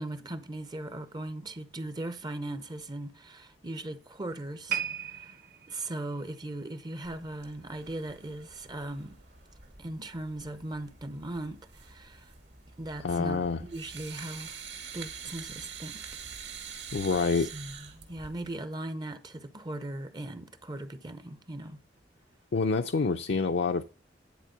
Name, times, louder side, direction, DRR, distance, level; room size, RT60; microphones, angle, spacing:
voice 1, 0.0-4.8 5.1-5.4 5.7-9.2 9.8-12.3 12.8-14.5 14.9-16.2 17.4-21.8, right 1 dB, 25° right, 0.6 m, -39 dB
sound 1, 4.7-8.0 8.3-8.6 9.2-9.3, right 9 dB, 50° right, 1.0 m, -38 dB
sound 2, 7.0-18.5, right 6 dB, 65° right, 2.2 m, -46 dB
voice 2, 13.0-13.6 16.9-17.5 22.5-23.9, left 4 dB, 70° left, 0.5 m, -27 dB
10.5 x 4.2 x 6.6 m
head